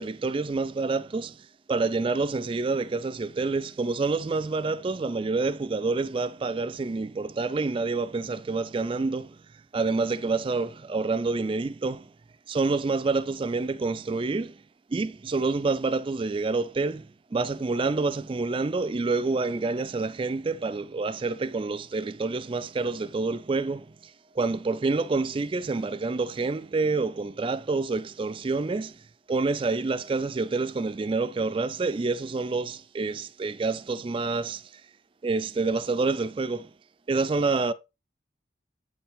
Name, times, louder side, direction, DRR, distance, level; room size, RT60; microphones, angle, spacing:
voice 1, 0.0-9.4 9.7-12.1 12.5-14.6 14.9-24.0 24.4-29.0 29.3-34.6 35.2-36.7 37.1-37.7, right 3 dB, 30° right, 0.3 m, -28 dB
8.0 x 4.6 x 3.5 m
head